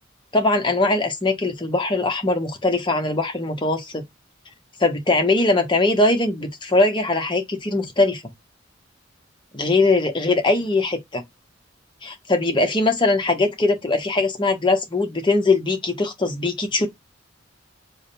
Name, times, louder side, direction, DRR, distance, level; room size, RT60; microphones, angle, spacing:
voice 1, 0.3-4.0 4.8-8.2 9.5-11.2 12.0-16.9, left 2 dB, 25° left, 0.9 m, -21 dB
3.5 x 2.1 x 4.0 m
head